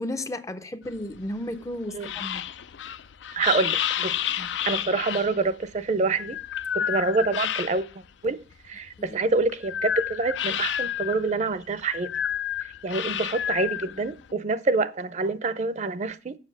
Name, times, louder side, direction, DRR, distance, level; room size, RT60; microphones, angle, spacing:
voice 1, 0.0-2.5 4.4-4.5 6.8-6.9 9.0-9.2, left 1 dB, 20° left, 0.5 m, -34 dB
sound 1, 0.9-8.1 8.5-14.3, left 9 dB, 85° left, 0.4 m, -30 dB
voice 2, 3.3-4.2 4.7-6.4 6.7-7.9 8.2-12.2 12.8-16.3, right 3 dB, 40° right, 0.5 m, -26 dB
7.4 x 5.6 x 6.5 m
head